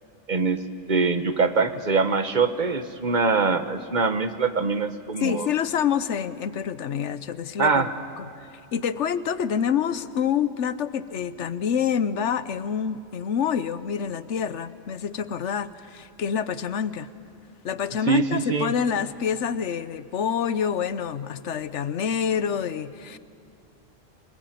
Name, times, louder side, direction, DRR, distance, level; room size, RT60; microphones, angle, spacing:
voice 1, 0.3-0.6 0.9-5.5 7.6-7.9 18.1-18.7, right 4 dB, 40° right, 10 dB, 1.2 m, -23 dB
voice 2, 5.2-7.9 8.2-8.3 8.7-17.1 17.6-23.2, left 8 dB, 70° left, 14 dB, 1.1 m, -27 dB
27.0 x 19.5 x 9.2 m, 2.5 s
omnidirectional pair, 1.3 m